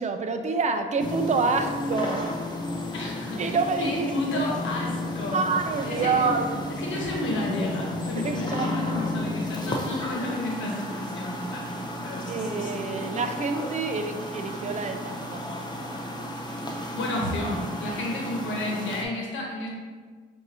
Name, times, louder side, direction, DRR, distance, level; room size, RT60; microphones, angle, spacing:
voice 1, 0.0-2.3 3.4-4.4 5.3-6.5 8.2-8.7 12.3-15.4, right 4 dB, 35° right, 6 dB, 0.4 m, -27 dB
sound 1, 1.0-19.0, left 1 dB, 20° left, 0.6 m, -33 dB
voice 2, 2.9-5.4 5.8-6.3 6.7-13.2 16.9-19.7, left 1 dB, 75° left, -2 dB, 1.1 m, -32 dB
5.9 x 2.6 x 2.8 m, 1.5 s
cardioid pair, 90°, 20 cm